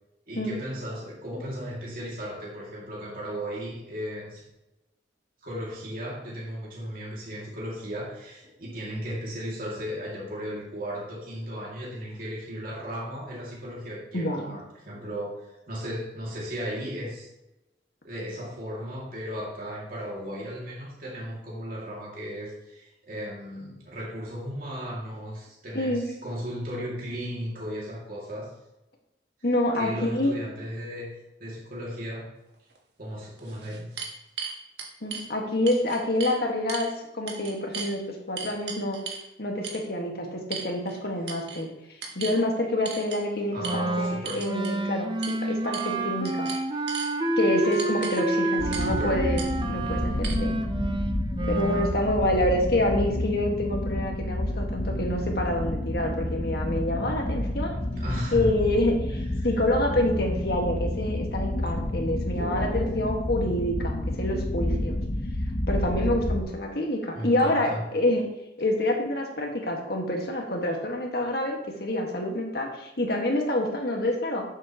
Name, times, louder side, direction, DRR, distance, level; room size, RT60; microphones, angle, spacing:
voice 1, 0.3-4.4 5.4-17.3 18.0-28.5 29.7-31.1 31.4-32.3 33.0-33.9 35.0-35.1 38.4-38.5 43.5-44.4 48.7-49.2 57.9-58.7 62.3-63.0 67.1-67.8, equal, 50° right, -5 dB, 2.4 m, -35 dB
voice 2, 14.1-14.6 25.7-26.0 29.4-30.4 35.0-36.9 37.1-39.0 39.4-41.7 42.2-46.5 47.4-50.5 51.4-57.7 58.3-65.0 65.7-68.2 68.6-74.4, left 1 dB, 60° left, 1 dB, 1.8 m, -27 dB
sound 1, 32.7-32.8 33.4-35.3 35.7-36.4 36.7-36.9 37.3-37.9 38.4-39.3 39.6-39.8 40.5-41.0 41.3-41.6 42.0-42.4 42.8-43.2 43.6-43.8 44.2-44.8 45.2-45.4 45.7-46.0 46.2-47.1 47.7-48.2 48.7-48.9 49.4-49.5 50.2-50.3, right 5 dB, 65° right, 1.5 m, -36 dB
Wind instrument woodwind instrument, 43.6-51.9, right 2 dB, 25° right, 0.6 m, -29 dB
sound 2, 48.6-66.4, left 1 dB, 35° left, 0.8 m, -29 dB
9.9 x 7.6 x 3.0 m, 0.92 s
head